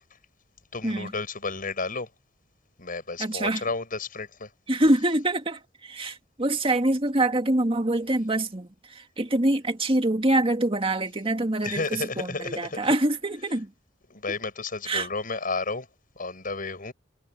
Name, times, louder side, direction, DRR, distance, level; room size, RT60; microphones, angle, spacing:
voice 1, 0.7-2.1 2.8-4.5 11.6-12.9 14.1-15.9 16.2-16.9, left 3 dB, 45° left, 7.9 m, -32 dB
voice 2, 3.2-3.6 4.7-8.7 9.0-13.7 14.9-15.1, right 1 dB, 30° right, 2.1 m, -25 dB
head